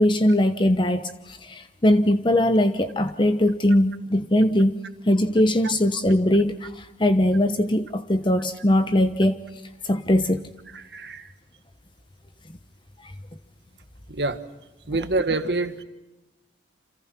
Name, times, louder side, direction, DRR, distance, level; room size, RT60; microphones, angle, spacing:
voice 1, 0.0-4.8 5.0-9.4 9.8-10.5, left 1 dB, 30° left, 9 dB, 1.0 m, -21 dB
voice 2, 10.7-11.3 14.1-14.4 14.9-15.8, right 2 dB, 70° right, 10 dB, 1.7 m, -27 dB
29.5 x 27.5 x 6.0 m, 1.0 s
head